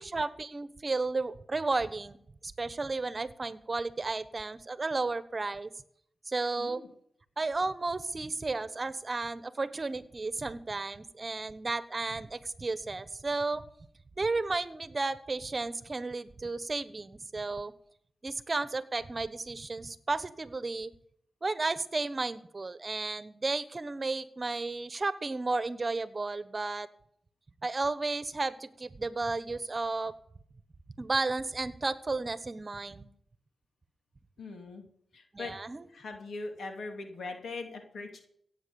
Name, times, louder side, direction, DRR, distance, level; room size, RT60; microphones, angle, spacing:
voice 1, 0.0-2.2 2.4-5.7 6.3-6.8 7.4-13.6 14.2-17.7 18.2-20.9 21.4-26.9 27.6-30.1 31.0-33.1 35.3-35.8, right 3 dB, 40° right, 14 dB, 1.1 m, -33 dB
voice 2, 6.6-6.9 34.4-34.8 35.1-35.5 35.9-38.2, left 3 dB, 80° left, 4 dB, 2.7 m, -41 dB
16.0 x 8.6 x 7.0 m, 0.67 s
cardioid pair, 55°, 0 cm